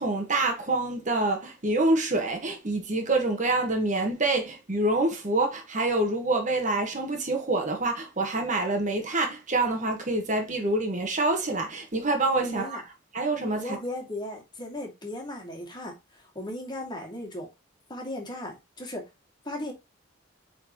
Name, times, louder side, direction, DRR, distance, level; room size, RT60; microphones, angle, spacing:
voice 1, 0.0-12.8 13.1-13.8, right 2 dB, 40° right, 1.4 m, -26 dB
voice 2, 12.4-12.8 13.5-17.5 17.9-19.1 19.4-19.7, left 1 dB, 20° left, 2.3 m, -36 dB
8.5 x 4.1 x 3.0 m
head